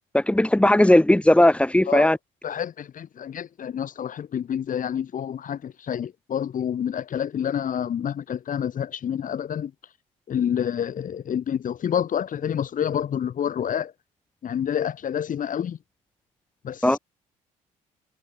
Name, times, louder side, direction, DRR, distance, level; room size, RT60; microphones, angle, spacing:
voice 1, 0.1-2.2 16.8-17.0, left 1 dB, 5° left, 6.6 m, -17 dB
voice 2, 2.4-9.7 10.3-13.9 14.4-15.8 16.6-17.0, left 9 dB, 55° left, 5.8 m, -28 dB
hypercardioid pair, 60°, 16 cm